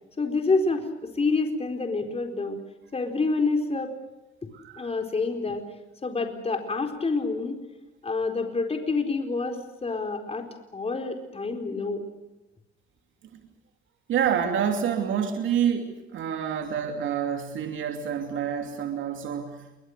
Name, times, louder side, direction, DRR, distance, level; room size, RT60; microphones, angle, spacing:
voice 1, 0.2-2.6 2.9-3.9 4.8-5.7 6.0-7.6 8.0-12.0, left 3 dB, 30° left, 4 dB, 4.3 m, -27 dB
voice 2, 4.5-4.9 14.1-19.8, right 8 dB, 75° right, 4 dB, 2.9 m, -28 dB
28.5 x 24.0 x 6.6 m, 1.0 s
cardioid pair, 90°, 20 cm